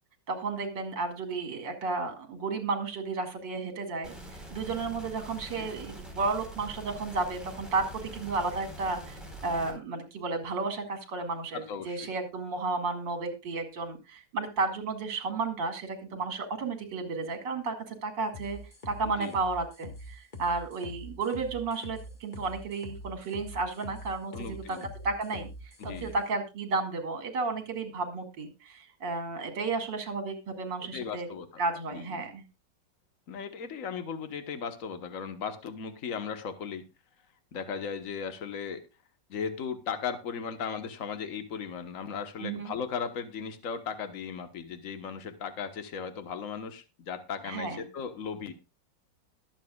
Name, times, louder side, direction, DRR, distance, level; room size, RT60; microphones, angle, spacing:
voice 1, 0.3-18.6 18.9-25.5 25.8-31.3 31.6-32.4 42.4-42.7 47.4-47.8, right 3 dB, 70° right, 6 dB, 2.9 m, -33 dB
sound 1, 4.0-9.7, equal, ahead, 4.3 m, -44 dB
voice 2, 11.5-12.1 19.0-19.3 24.3-24.9 25.8-26.1 30.8-31.5 31.9-32.2 33.3-36.9 37.5-38.8 39.3-48.5, left 6 dB, 45° left, 9 dB, 1.6 m, -37 dB
sound 2, 18.3-26.1, left 1 dB, 25° left, 1.9 m, -44 dB
21.5 x 7.5 x 2.4 m, 0.26 s
omnidirectional pair, 2.0 m